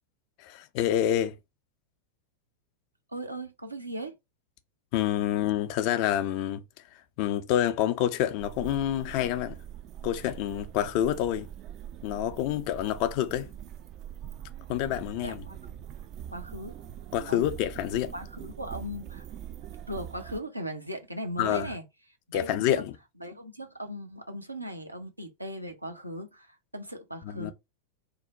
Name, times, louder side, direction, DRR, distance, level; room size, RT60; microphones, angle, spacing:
voice 1, 0.4-1.4 4.9-6.6 7.2-9.6 10.0-11.5 12.0-13.5 14.7-15.4 17.1-18.1 21.4-21.7 22.3-23.0 27.2-27.5, left 11 dB, 45° left, 0.4 m, -27 dB
voice 2, 3.1-4.1 15.2-15.6 16.3-16.8 17.3-17.4 18.1-19.3 19.9-21.8 22.3-22.8 23.2-27.5, equal, 85° right, 0.6 m, -38 dB
sound 1, 8.4-20.4, right 10 dB, 40° right, 0.3 m, -43 dB
2.6 x 2.0 x 3.8 m
figure-of-eight pair, 90°, 0 cm